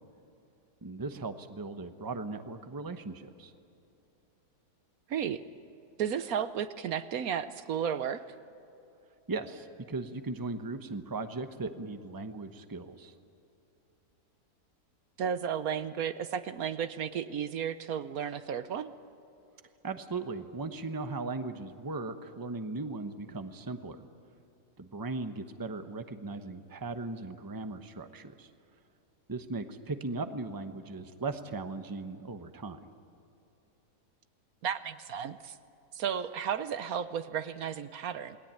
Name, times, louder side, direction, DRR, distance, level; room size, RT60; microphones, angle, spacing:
voice 1, 0.8-3.5 9.3-13.1 19.8-24.1 24.8-28.5 29.3-32.8, right 3 dB, 15° right, 8 dB, 0.9 m, -38 dB
voice 2, 5.1-5.4 6.0-8.2 15.2-18.9 34.6-35.5 35.9-38.4, right 8 dB, 70° right, 12 dB, 1.2 m, -33 dB
28.5 x 20.0 x 9.0 m, 2.8 s
omnidirectional pair, 1.6 m